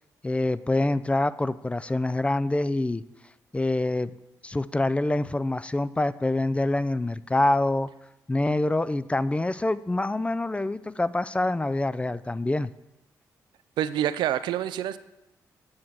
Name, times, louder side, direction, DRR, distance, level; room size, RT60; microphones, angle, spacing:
voice 1, 0.2-3.0 3.5-4.1 4.4-7.9 8.3-12.7, left 2 dB, 15° left, 16 dB, 0.3 m, -26 dB
voice 2, 13.8-15.0, right 11 dB, 85° right, 13 dB, 0.4 m, -27 dB
8.6 x 5.8 x 4.6 m, 0.93 s
supercardioid pair, 55°, 8 cm